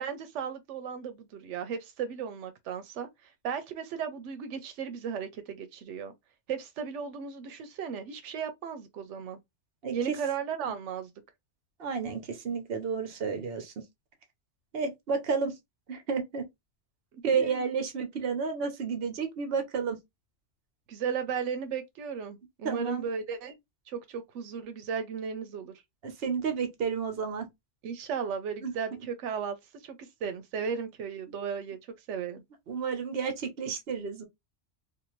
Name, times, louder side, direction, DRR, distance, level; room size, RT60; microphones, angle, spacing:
voice 1, 0.0-6.1 6.5-9.4 9.9-11.1 17.1-17.8 20.9-23.6 23.9-25.7 27.8-31.8 32.1-32.4, right 7 dB, 90° right, 0.9 m, -35 dB
voice 2, 11.8-13.7 14.7-15.5 15.9-16.5 17.2-20.0 22.6-23.1 26.0-27.5 28.6-28.8 32.7-34.2, right 5 dB, 60° right, 1.0 m, -31 dB
2.6 x 2.5 x 3.0 m
omnidirectional pair, 1.2 m